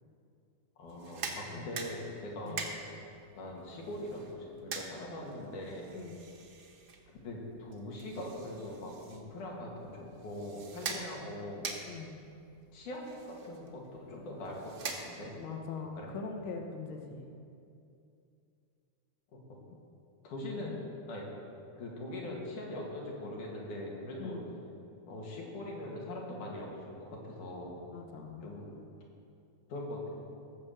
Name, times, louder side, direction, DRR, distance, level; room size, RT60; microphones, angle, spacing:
voice 1, 0.8-2.7 3.4-5.9 7.2-11.7 12.7-13.8 14.1-15.3 16.0-16.1 19.3-19.6 20.2-20.8 21.1-21.3 21.8-24.4 25.1-27.8 28.4-28.7 29.7-30.2, left 1 dB, 80° left, -2 dB, 3.7 m, -42 dB
sound 1, 0.9-15.5, right 4 dB, 55° right, 1.4 m, -45 dB
voice 2, 11.9-12.2 15.3-17.2 19.7-19.8 20.5-20.8 24.1-24.5 27.9-28.5, left 5 dB, 60° left, 3 dB, 1.5 m, -42 dB
15.5 x 7.4 x 6.7 m, 2.5 s
omnidirectional pair, 3.5 m